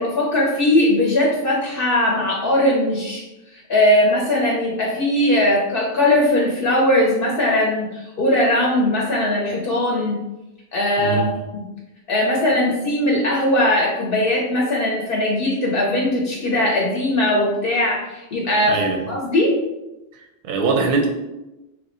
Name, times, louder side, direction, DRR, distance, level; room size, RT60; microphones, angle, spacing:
voice 1, 0.0-3.2 3.5-10.2 10.7-11.7 12.1-18.8 19.1-19.5, left 1 dB, 60° left, -3 dB, 0.8 m, -19 dB
voice 2, 11.0-11.3 18.6-19.1 20.4-21.1, right 4 dB, 60° right, 2 dB, 0.7 m, -21 dB
3.1 x 2.1 x 4.1 m, 1.0 s
omnidirectional pair, 1.1 m